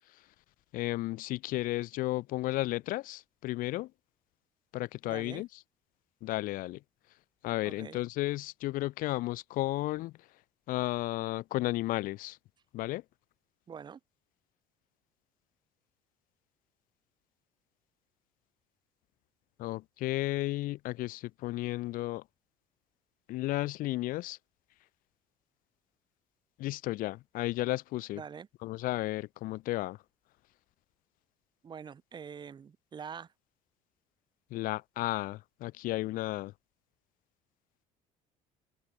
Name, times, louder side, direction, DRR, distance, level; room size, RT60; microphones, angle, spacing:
voice 1, 0.7-3.9 4.7-5.5 6.2-6.8 7.4-10.1 10.7-12.4 12.7-13.0 19.6-22.2 23.3-24.4 26.6-28.2 28.6-30.0 34.5-36.5, left 17 dB, 70° left, 2.8 m, -33 dB
voice 2, 5.0-5.4 7.6-8.0 13.7-14.0 28.1-28.5 31.6-33.3, right 7 dB, 30° right, 3.6 m, -45 dB
cardioid pair, 140°, 15 cm